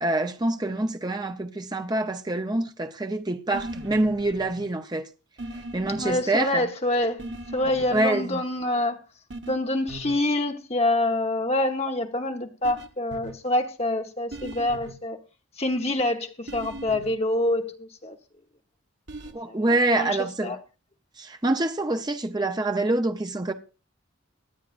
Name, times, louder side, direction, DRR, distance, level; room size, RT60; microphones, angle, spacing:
voice 1, 0.0-5.1 5.7-6.7 7.9-8.4 19.3-20.5 21.2-23.5, right 2 dB, 20° right, 0.7 m, -26 dB
sound 1, 3.5-4.7 5.4-6.2 7.2-8.0 9.3-9.5 9.9-10.1 12.6-13.3 14.3-14.9 16.5-17.1 19.1-19.3, right 2 dB, 60° right, 1.2 m, -39 dB
voice 2, 6.0-7.3 7.5-9.0 9.5-15.2 15.6-18.2 19.5-20.6, left 1 dB, 30° left, 1.1 m, -26 dB
24.0 x 8.3 x 2.6 m
head